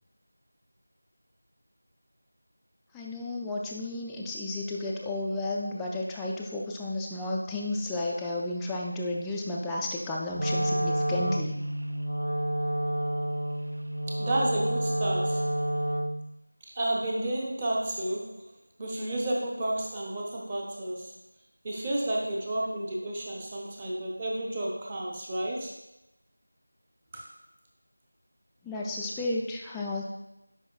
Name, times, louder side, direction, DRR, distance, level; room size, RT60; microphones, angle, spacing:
voice 1, 2.9-11.5 28.6-30.1, left 2 dB, 5° left, -4 dB, 0.3 m, -32 dB
Wind instrument woodwind instrument, 10.3-16.3, right 1 dB, 80° right, 0.4 m, -29 dB
voice 2, 14.1-15.5 16.7-18.5 18.8-21.1 21.6-25.7 27.1-27.3, right 1 dB, 20° right, -2 dB, 0.8 m, -31 dB
10.0 x 4.7 x 2.4 m, 0.90 s
figure-of-eight pair, 170°, 0 cm